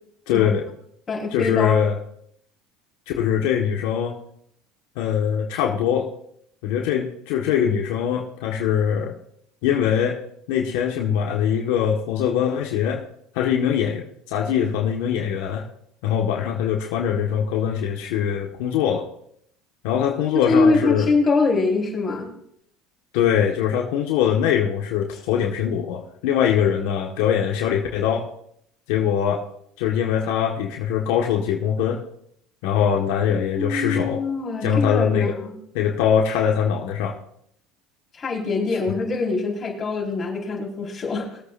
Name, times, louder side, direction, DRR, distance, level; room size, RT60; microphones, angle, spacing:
voice 1, 0.3-0.7 1.3-2.0 3.1-4.2 4.9-6.1 6.6-9.1 9.6-10.2 10.5-13.0 13.3-15.7 16.0-19.1 19.8-21.1 23.1-28.3 28.9-29.4 29.8-32.0 32.6-34.2 34.6-35.3 35.7-37.2, left 8 dB, 80° left, 0 dB, 1.5 m, -22 dB
voice 2, 1.1-1.8 20.4-22.3 33.3-35.5 38.1-41.4, left 3 dB, 30° left, -1 dB, 4.5 m, -23 dB
21.5 x 8.3 x 2.6 m, 0.69 s
supercardioid pair, 100°, 0 cm